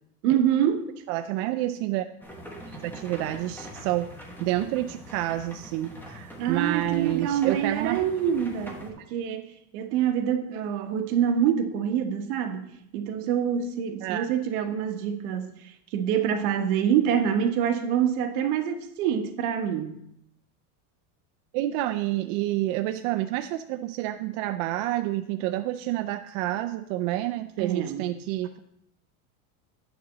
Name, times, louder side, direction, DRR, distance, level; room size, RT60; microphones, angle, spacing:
voice 1, 0.2-0.9 6.4-20.0 27.6-28.1, right 9 dB, 75° right, 1.3 m, -26 dB
voice 2, 1.1-2.1 2.7-4.1 4.4-8.0 14.0-14.3 21.5-28.6, right 15 dB, 55° right, 0.5 m, -29 dB
sound 1, 2.2-8.9, equal, 5° left, 1.1 m, -43 dB
9.3 x 4.1 x 6.7 m
supercardioid pair, 150°, 45 cm